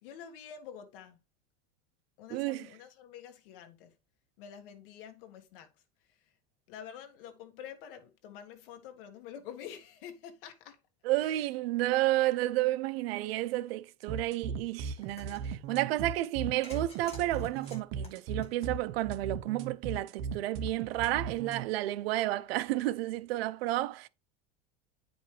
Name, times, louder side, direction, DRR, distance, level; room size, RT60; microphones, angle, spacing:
voice 1, 0.0-1.2 2.2-4.0 4.4-6.4 6.7-10.8 11.2-11.5, left 8 dB, 65° left, 1.6 m, -48 dB
voice 2, 2.3-2.7 11.0-24.1, right 16 dB, 80° right, 0.7 m, -31 dB
sound 1, 14.1-21.6, right 6 dB, 40° right, 0.9 m, -37 dB
sound 2, 15.0-15.5 16.6-19.1, left 3 dB, 20° left, 1.7 m, -51 dB
9.0 x 5.2 x 3.3 m
supercardioid pair, 175°, 30 cm